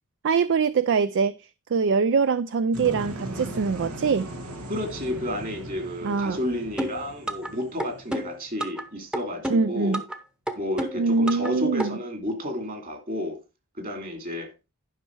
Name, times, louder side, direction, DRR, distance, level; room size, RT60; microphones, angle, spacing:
voice 1, 0.2-1.3 1.7-4.3 6.0-6.4 9.5-10.0 11.0-12.0, right 5 dB, 55° right, 0.4 m, -23 dB
sound 1, 2.7-8.6, right 1 dB, 85° right, 1.8 m, -38 dB
voice 2, 4.7-10.0 10.5-13.4 13.8-14.5, left 1 dB, 40° right, 2.7 m, -31 dB
sound 2, 6.8-7.5 7.8-8.8 9.1-10.2 10.5-11.5 11.8-11.9, right 1 dB, 5° right, 0.9 m, -30 dB
11.0 x 5.5 x 4.6 m
head